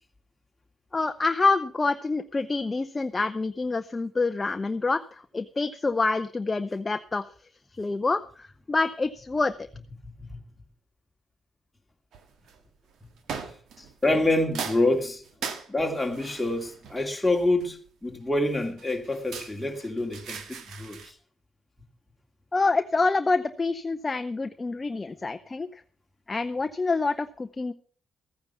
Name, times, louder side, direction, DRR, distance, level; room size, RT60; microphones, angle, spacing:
voice 1, 0.9-7.2 7.7-9.5 22.5-25.8 26.3-27.7, left 3 dB, 20° left, 0.6 m, -27 dB
voice 2, 10.0-10.4 14.0-15.2 15.7-21.0, left 2 dB, 5° left, 2.3 m, -27 dB
sound 1, 12.1-12.6 13.3-14.2 14.5-17.9 18.5-21.1, right 6 dB, 70° right, 1.6 m, -39 dB
14.0 x 9.5 x 5.5 m
cardioid pair, 115°, 0 cm